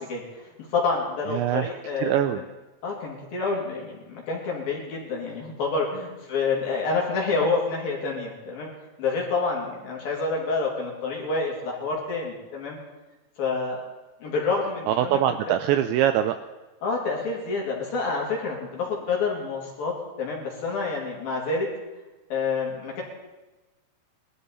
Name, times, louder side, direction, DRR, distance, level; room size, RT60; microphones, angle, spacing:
voice 1, 0.0-2.2 2.8-8.7 9.0-12.8 13.4-13.8 14.2-15.2 16.8-21.7 22.3-23.0, left 4 dB, 55° left, -2 dB, 4.0 m, -28 dB
voice 2, 1.3-1.7 2.0-2.4 14.9-16.4, right 11 dB, 85° right, 8 dB, 2.7 m, -23 dB
20.5 x 13.0 x 4.2 m, 1.1 s
omnidirectional pair, 5.7 m